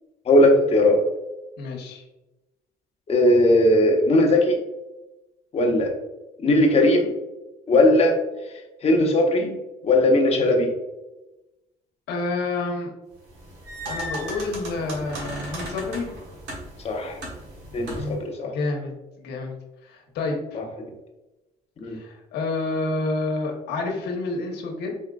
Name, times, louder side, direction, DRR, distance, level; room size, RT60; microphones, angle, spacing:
voice 1, 0.3-1.0 3.1-4.6 5.5-5.9 6.4-7.1 7.7-8.2 8.8-9.6 9.8-10.7 16.8-17.2 17.7-18.5 20.5-20.6 21.8-22.0, left 1 dB, 40° left, 2 dB, 0.9 m, -18 dB
voice 2, 1.6-2.0 12.1-12.9 13.9-16.1 17.7-18.2 18.4-18.9 19.2-19.5 19.8-20.6 21.9-24.9, left 3 dB, 80° left, 1 dB, 1.0 m, -29 dB
sound 1, 13.2-18.2, right 1 dB, 80° right, 1.4 m, -36 dB
4.4 x 3.6 x 2.4 m, 1.0 s
cardioid pair, 110°, 17 cm